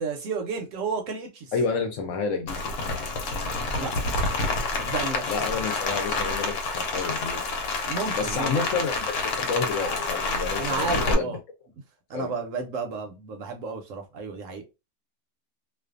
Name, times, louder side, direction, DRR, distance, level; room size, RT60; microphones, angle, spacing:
voice 1, 0.0-1.5 3.8-3.9 4.8-5.2 7.9-8.5 10.6-11.4 12.1-14.6, right 4 dB, 65° right, 0.8 m, -32 dB
voice 2, 1.5-2.6 5.2-7.4 8.1-11.4 12.1-12.3, left 5 dB, 65° left, 0.9 m, -29 dB
Rain, 2.5-11.1, left 3 dB, 85° left, 1.2 m, -28 dB
2.5 x 2.3 x 2.4 m
omnidirectional pair, 1.6 m